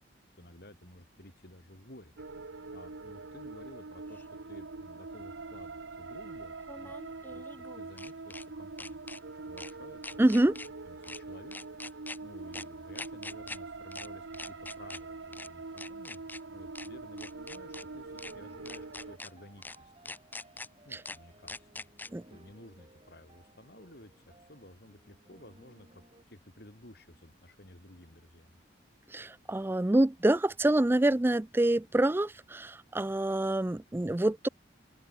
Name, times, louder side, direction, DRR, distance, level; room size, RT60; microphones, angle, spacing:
voice 1, 0.4-2.1 2.7-6.9 7.3-7.5 7.7-9.1 9.4-10.2 10.9-11.6 12.2-19.9 20.9-21.7 22.3-24.1 24.4-25.9 26.3-28.6, left 1 dB, 55° left, 5.2 m, -53 dB
sound 1, 2.2-19.2, right 3 dB, 85° right, 1.1 m, -44 dB
sound 2, 4.1-4.2 6.6-8.4 8.8-9.2 9.6-9.7 10.0-10.7 11.0-11.2 11.5-12.2 12.5-12.6 12.9-13.6 13.9-14.1 14.3-15.0 15.3-15.5 15.8-16.4 16.7-16.9 17.2-17.8 18.2-18.3 18.7-19.3 19.6-19.8 20.1-20.7 21.0-21.2 21.5-22.1, left 2 dB, 10° left, 1.5 m, -43 dB
voice 2, 10.2-10.6 22.1-22.2 29.1-34.5, right 1 dB, 10° right, 0.4 m, -26 dB
sound 3, 17.6-26.2, right 1 dB, 30° right, 7.0 m, -60 dB
open air
head